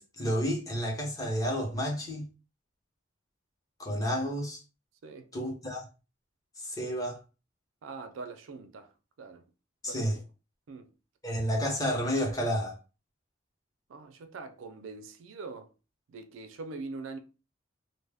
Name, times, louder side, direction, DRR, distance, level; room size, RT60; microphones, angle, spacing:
voice 1, 0.0-2.3 3.8-4.6 5.3-5.8 6.6-7.2 9.8-10.2 11.2-12.8, equal, 20° left, 0.7 m, -30 dB
voice 2, 7.8-8.9 9.2-9.4 9.9-10.1 10.7-10.9 13.9-15.7 16.1-17.2, right 3 dB, 85° right, 0.4 m, -42 dB
2.1 x 2.1 x 3.3 m
head